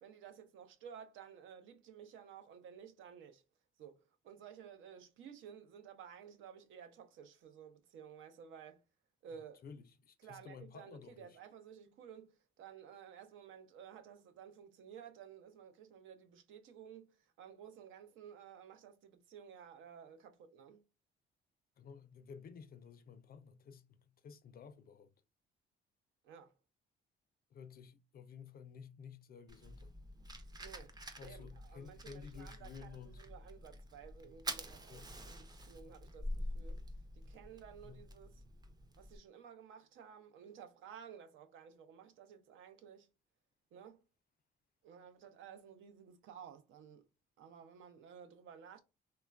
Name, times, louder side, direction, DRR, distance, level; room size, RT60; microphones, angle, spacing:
voice 1, 0.0-3.4 3.8-8.8 9.2-9.6 10.2-20.8 26.2-26.5 30.6-36.8 37.1-38.3 39.0-43.1 43.7-44.0 44.8-47.0 47.4-48.8, right 8 dB, 85° right, 0.5 m, -54 dB
voice 2, 9.6-11.4 21.8-25.1 27.5-30.0 31.2-33.2 34.9-35.1 37.8-38.0, left 6 dB, 50° left, 0.4 m, -53 dB
Fire, 29.5-39.2, equal, 20° right, 0.4 m, -47 dB
3.0 x 2.2 x 2.3 m
cardioid pair, 90°, 20 cm